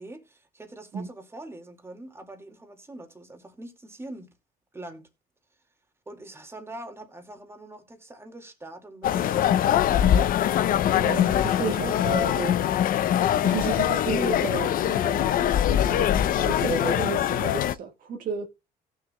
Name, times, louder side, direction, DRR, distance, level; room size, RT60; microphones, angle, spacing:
voice 1, 0.0-4.3 4.7-5.0 6.1-10.0, right 1 dB, 15° right, 2.1 m, -43 dB
sound 1, 9.0-17.7, left 10 dB, 55° left, 0.6 m, -23 dB
voice 2, 10.9-12.6 13.4-15.3 15.7-18.5, right 5 dB, 55° right, 1.5 m, -32 dB
17.0 x 6.5 x 2.2 m
cardioid pair, 110°, 17 cm